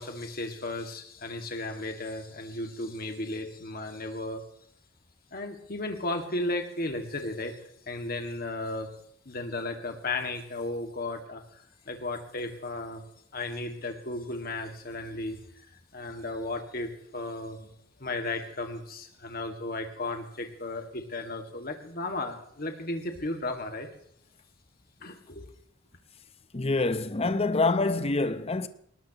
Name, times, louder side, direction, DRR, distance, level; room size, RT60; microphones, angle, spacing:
voice 1, 0.0-4.4 5.3-7.6 7.9-8.9 9.3-11.4 11.9-13.0 13.3-15.4 15.9-17.7 18.0-23.9 25.0-25.5, left 2 dB, 50° left, 2.1 m, -34 dB
voice 2, 26.5-28.7, left 3 dB, 30° left, 0.8 m, -26 dB
20.0 x 19.5 x 3.0 m
head